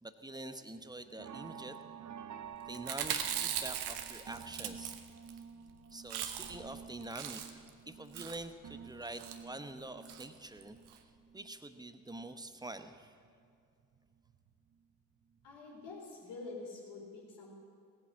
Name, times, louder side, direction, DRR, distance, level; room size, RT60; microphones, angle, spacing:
voice 1, 0.0-1.8 2.7-5.0 5.9-10.8 11.3-13.2, right 2 dB, 10° right, 9 dB, 1.0 m, -46 dB
sound 1, 0.7-12.9 13.2-14.9 15.2-15.6 15.9-16.0, right 7 dB, 40° right, 0.8 m, -51 dB
Chewing mastication, 2.7-5.4 5.7-5.8 6.0-6.7 7.0-7.7 8.1-8.5 9.1-9.4 10.1-10.3 10.6-10.7 10.9-11.0, right 10 dB, 65° right, 1.1 m, -39 dB
voice 2, 15.4-17.6, left 3 dB, 70° left, -3 dB, 4.2 m, -47 dB
17.5 x 8.3 x 7.3 m, 2.3 s
hypercardioid pair, 45°, 42 cm